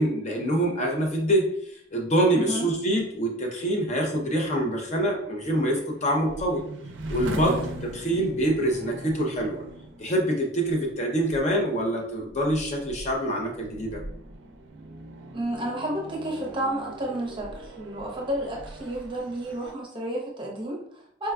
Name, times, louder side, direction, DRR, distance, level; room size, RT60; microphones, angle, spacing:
voice 1, 0.0-6.6 7.1-9.6 10.0-14.0, right 1 dB, 35° left, 0 dB, 0.5 m, -25 dB
voice 2, 2.3-2.7 7.4-7.6 15.3-21.3, right 1 dB, 25° right, -2 dB, 0.6 m, -31 dB
sound 1, 2.8-19.7, right 1 dB, 65° right, 0.4 m, -40 dB
4.2 x 2.2 x 2.3 m, 0.69 s
head